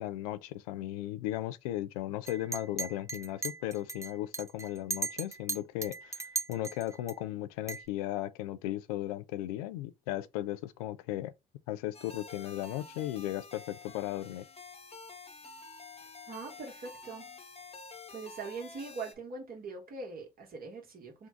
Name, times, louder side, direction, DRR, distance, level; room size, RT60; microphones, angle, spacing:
voice 1, 0.0-6.2 6.5-11.3 11.7-14.4, left 14 dB, 85° left, 0.4 m, -36 dB
Chink clink, 2.3-7.1 7.7-7.9, right 4 dB, 15° right, 0.5 m, -37 dB
sound 1, 11.9-19.1, left 3 dB, 35° left, 1.2 m, -49 dB
voice 2, 16.3-17.3 18.1-21.3, right 4 dB, 50° right, 1.8 m, -42 dB
3.6 x 2.4 x 4.5 m
hypercardioid pair, 55°, 19 cm